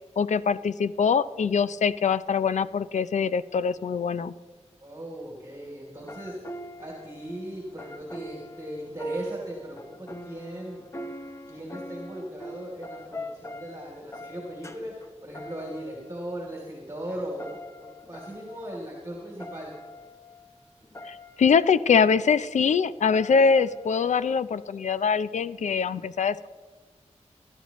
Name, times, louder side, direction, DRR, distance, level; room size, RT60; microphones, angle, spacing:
voice 1, 0.2-4.3 21.0-26.5, left 6 dB, 85° left, 15 dB, 0.5 m, -23 dB
voice 2, 4.8-6.4 6.8-10.8 11.5-19.7, right 1 dB, 25° right, -2 dB, 3.1 m, -38 dB
sound 1, 6.0-16.5 16.9-22.4 23.0-24.3, equal, 25° left, 0.9 m, -42 dB
25.5 x 12.0 x 3.1 m, 1.5 s
wide cardioid pair, 80°, 12 cm